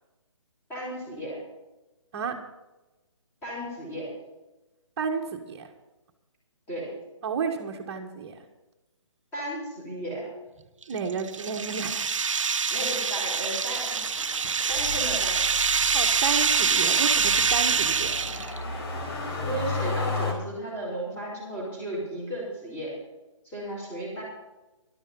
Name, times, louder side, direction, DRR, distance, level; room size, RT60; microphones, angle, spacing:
voice 1, 0.7-1.4 3.4-4.1 6.7-7.0 9.3-10.3 12.7-14.0 14.7-15.4 19.4-22.9 23.4-24.2, right 1 dB, 15° left, -5 dB, 5.6 m, -34 dB
voice 2, 5.0-5.7 7.2-8.4 10.9-12.1 15.9-18.2, right 6 dB, 30° right, -2 dB, 1.5 m, -31 dB
sound 1, 10.8-18.6, right 6 dB, 75° right, 0.9 m, -25 dB
Motor vehicle (road), 13.7-20.3, left 3 dB, 50° left, 3.9 m, -34 dB
12.5 x 12.0 x 5.5 m, 1.1 s
hypercardioid pair, 155°, 16 cm